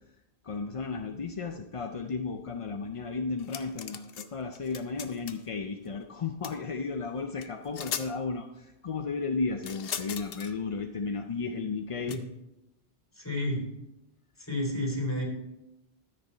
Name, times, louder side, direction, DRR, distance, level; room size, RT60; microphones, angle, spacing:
voice 1, 0.4-12.2, left 4 dB, 45° left, 5 dB, 0.5 m, -34 dB
sound 1, 3.4-4.3 4.5-5.5 6.4-6.6 7.4-7.5 7.7-8.1 9.6-10.5 12.1-12.2, left 8 dB, 65° left, 0.8 m, -38 dB
voice 2, 13.1-13.6 14.4-15.2, left 1 dB, 15° left, -3 dB, 3.2 m, -31 dB
13.0 x 6.7 x 4.4 m, 0.91 s
omnidirectional pair, 1.1 m